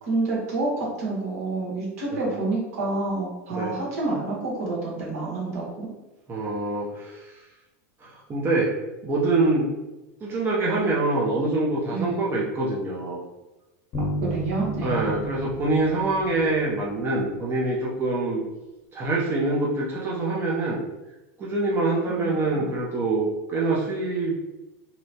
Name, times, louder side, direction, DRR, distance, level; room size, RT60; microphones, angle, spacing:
voice 1, 0.0-5.9 11.9-12.2 14.0-15.2 22.2-22.3 22.5-22.7, right 2 dB, 75° right, -4 dB, 1.1 m, -28 dB
voice 2, 6.3-7.4 8.0-8.7 9.0-9.7 10.2-13.2 14.8-18.4 18.9-20.8 21.4-24.4, right 2 dB, 25° right, -4 dB, 0.6 m, -25 dB
sound 1, 13.9-17.7, equal, 40° left, 0.8 m, -33 dB
2.8 x 2.1 x 2.8 m, 1.0 s
supercardioid pair, 115°, 8 cm